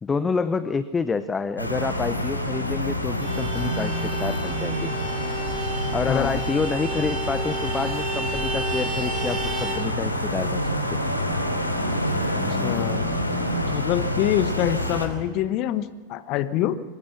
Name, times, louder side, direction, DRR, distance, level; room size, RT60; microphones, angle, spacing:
voice 1, 0.0-4.9 5.9-10.6 10.9-11.0, left 5 dB, 15° left, 14 dB, 0.7 m, -28 dB
sound 1, 1.6-15.1, equal, 85° left, 2.9 m, -27 dB
Vehicle horn car horn honking, 3.2-9.8, right 2 dB, 15° right, 8.0 m, -32 dB
voice 2, 6.1-6.4 12.6-13.1 13.7-16.8, left 12 dB, 40° left, 13 dB, 1.3 m, -25 dB
23.5 x 20.0 x 6.0 m, 1.5 s
figure-of-eight pair, 90°, 0 cm